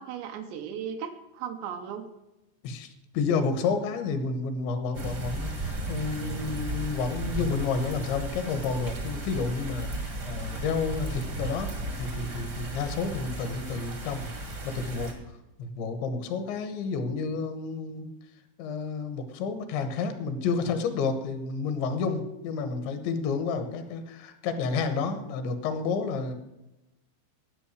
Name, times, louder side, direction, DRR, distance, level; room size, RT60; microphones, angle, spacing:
voice 1, 0.0-2.1, right 8 dB, 75° right, 6 dB, 2.9 m, -36 dB
voice 2, 2.6-11.7 12.0-15.1 15.6-18.1 18.6-26.3, left 4 dB, 75° left, 9 dB, 3.3 m, -30 dB
sound 1, 4.9-15.1, right 1 dB, 45° right, 1.3 m, -35 dB
13.0 x 9.1 x 6.4 m, 0.95 s
omnidirectional pair, 5.5 m